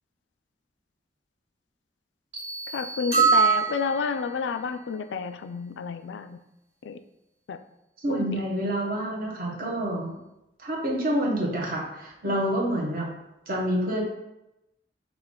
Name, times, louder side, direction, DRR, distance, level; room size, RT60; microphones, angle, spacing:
sound 1, 2.3-4.2, right 2 dB, 70° right, 1.4 m, -37 dB
voice 1, 2.7-6.4 6.8-7.0 7.5-7.6 12.2-12.4, left 5 dB, 80° left, 10 dB, 0.3 m, -30 dB
sound 2, 3.1-4.5, right 5 dB, 20° right, 1.5 m, -22 dB
voice 2, 8.0-10.2 10.6-13.1 13.5-14.0, equal, 50° right, -2 dB, 1.1 m, -27 dB
5.6 x 2.4 x 3.7 m, 0.90 s
head